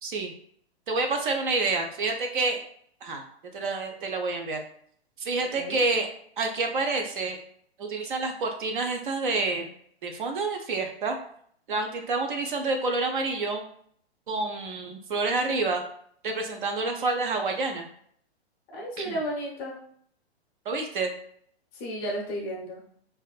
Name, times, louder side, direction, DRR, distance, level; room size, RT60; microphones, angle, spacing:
voice 1, 0.0-0.3 0.9-2.6 3.0-3.2 3.5-4.6 5.2-6.1 6.4-7.4 7.8-9.7 10.0-11.2 11.7-13.6 14.3-15.8 16.2-17.9 19.0-19.2 20.7-21.1, right 3 dB, 50° right, 4 dB, 0.5 m, -28 dB
voice 2, 18.7-19.8 21.7-22.8, equal, 20° left, -2 dB, 0.6 m, -33 dB
2.5 x 2.4 x 2.3 m, 0.63 s
hypercardioid pair, 125°, 32 cm